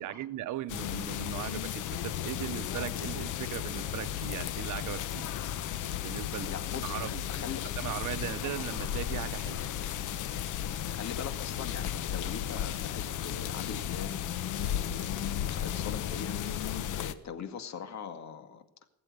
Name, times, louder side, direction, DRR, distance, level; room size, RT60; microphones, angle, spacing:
voice 1, 0.0-5.2 6.0-7.4 7.8-9.6 16.8-16.9, right 14 dB, 80° right, 0.8 m, -38 dB
sound 1, 0.7-17.1, left 10 dB, 80° left, 1.1 m, -34 dB
voice 2, 6.4-7.7 10.9-18.6, left 7 dB, 65° left, 2.1 m, -42 dB
20.0 x 7.7 x 9.4 m
cardioid pair, 90°, 30 cm